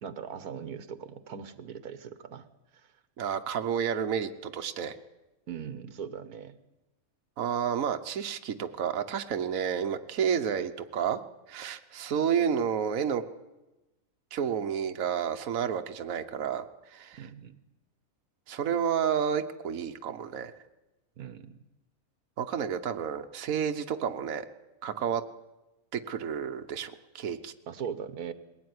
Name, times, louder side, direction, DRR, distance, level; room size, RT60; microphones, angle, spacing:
voice 1, 0.0-2.5 2.7-2.9 5.5-6.6 17.2-17.6 21.2-21.6 27.7-28.3, right 7 dB, 90° right, 12 dB, 1.6 m, -40 dB
voice 2, 3.2-5.0 7.4-11.2 11.5-13.2 14.3-17.2 18.5-20.5 22.4-24.4 24.8-25.2 25.9-27.5, right 8 dB, 65° right, 7 dB, 1.4 m, -30 dB
21.0 x 17.5 x 9.6 m, 1.0 s
omnidirectional pair, 1.5 m